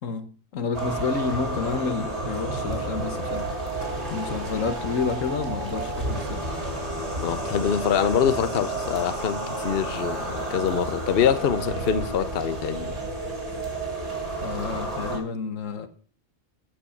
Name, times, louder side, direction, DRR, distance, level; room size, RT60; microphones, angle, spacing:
voice 1, 0.0-3.5 4.1-6.4 14.4-15.9, left 5 dB, 85° left, 1.6 m, -30 dB
sound 1, 0.7-15.2, right 2 dB, 60° right, 3.8 m, -31 dB
voice 2, 7.2-12.9, left 8 dB, 55° left, 0.9 m, -25 dB
15.0 x 5.4 x 7.2 m
omnidirectional pair, 1.3 m